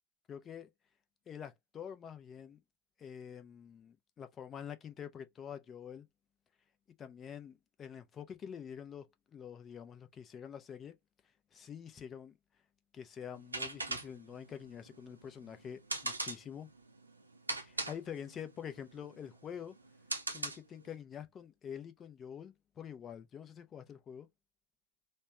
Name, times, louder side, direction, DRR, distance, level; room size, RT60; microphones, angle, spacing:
voice 1, 0.3-0.7 1.3-2.6 3.0-6.1 7.0-9.1 9.3-11.0 11.5-12.4 12.9-16.7 17.6-19.8 20.3-24.3, left 8 dB, 25° left, 0.6 m, -46 dB
sound 1, 13.3-20.9, right 2 dB, 80° right, 0.6 m, -41 dB
3.3 x 2.1 x 4.1 m
figure-of-eight pair, 90°, 0 cm